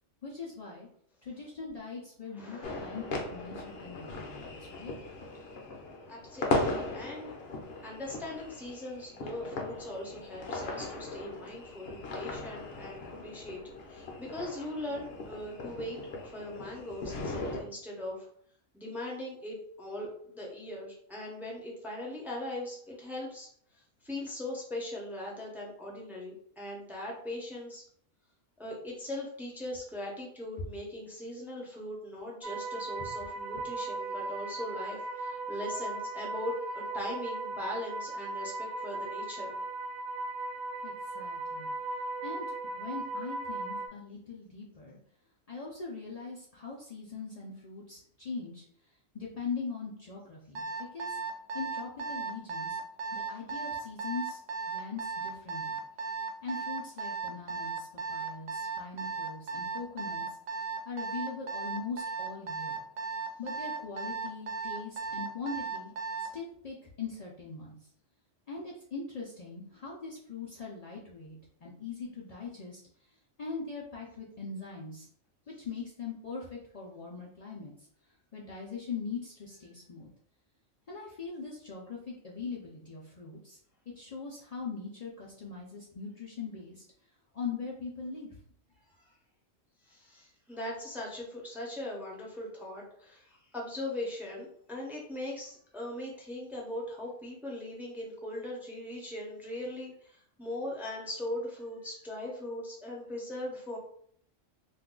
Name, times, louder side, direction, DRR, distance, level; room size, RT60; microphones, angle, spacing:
voice 1, 0.2-0.9 1.2-4.9 40.8-41.7 42.2-42.5 42.7-45.0 45.5-48.6 49.1-50.6 50.9-51.2 51.5-52.8 53.1-54.4 54.7-55.8 56.2-60.3 60.9-62.8 63.4-65.9 66.2-67.8 68.5-72.8 73.4-75.1 75.5-77.7 78.3-80.1 80.9-83.6 84.0-86.8 87.3-88.4, left 4 dB, 85° left, -4 dB, 0.3 m, -41 dB
voice 2, 2.3-2.7 6.1-7.3 7.8-18.3 18.7-20.1 20.3-23.5 24.0-27.8 28.6-39.6 89.0-89.1 89.8-103.8, left 1 dB, ahead, -2 dB, 0.4 m, -40 dB
sound 1, 2.6-17.6, left 2 dB, 60° left, 0.8 m, -38 dB
sound 2, 32.4-43.9, right 2 dB, 55° right, 0.9 m, -37 dB
Alarm, 50.5-66.4, right 5 dB, 85° right, 1.0 m, -36 dB
2.5 x 2.2 x 3.6 m, 0.63 s
omnidirectional pair, 1.3 m